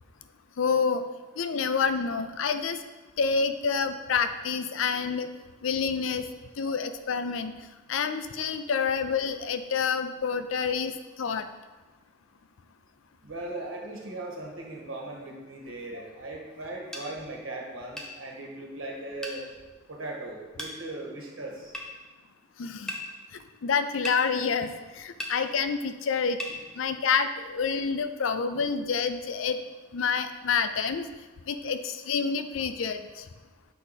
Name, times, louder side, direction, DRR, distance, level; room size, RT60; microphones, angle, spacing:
voice 1, 0.6-1.0 1.4-2.8 3.2-5.3 5.6-6.3 6.6-7.5 7.9-10.9 11.2-11.5 15.9-16.0 22.6-22.9 23.3-26.4 26.7-29.6 29.9-31.1 31.5-33.2, left 5 dB, 70° left, 10 dB, 0.4 m, -28 dB
voice 2, 13.2-19.5 19.9-21.7 28.5-28.6, right 2 dB, 80° right, -1 dB, 1.5 m, -38 dB
sound 1, 16.9-17.1 18.0-18.1 19.2-19.4 20.6-20.8 21.7-21.9 22.9-23.0 24.0-24.2 25.2-25.4 26.4-26.6, left 1 dB, 5° left, 0.7 m, -35 dB
6.9 x 4.7 x 4.1 m, 1.2 s
head